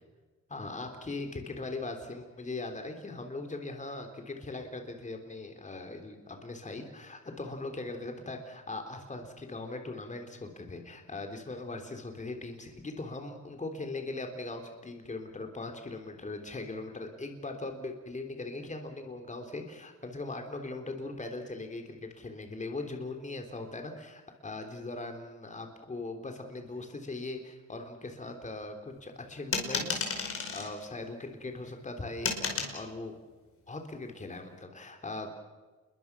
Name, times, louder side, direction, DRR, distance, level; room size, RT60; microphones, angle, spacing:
voice 1, 0.5-33.1 33.7-35.3, left 2 dB, 25° left, 5 dB, 3.5 m, -40 dB
sound 1, 29.5-30.7 32.2-32.8, left 4 dB, 45° left, 5.3 m, -32 dB
28.5 x 22.5 x 6.1 m, 1.3 s
cardioid pair, 90°, 30 cm